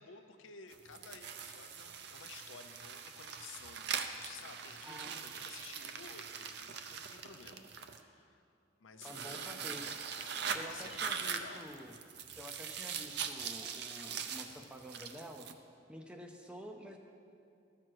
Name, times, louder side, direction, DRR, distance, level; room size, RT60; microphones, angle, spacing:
voice 1, 0.0-8.4 8.8-9.9 10.5-11.6, left 5 dB, 85° left, 7 dB, 0.7 m, -54 dB
sound 1, 0.7-8.0 9.0-15.5, right 6 dB, 55° right, 0.5 m, -42 dB
voice 2, 4.8-5.2 9.0-9.9 10.5-11.9 12.4-15.5 15.9-17.0, equal, 5° right, 3 dB, 0.5 m, -49 dB
13.5 x 6.1 x 4.6 m, 2.5 s
head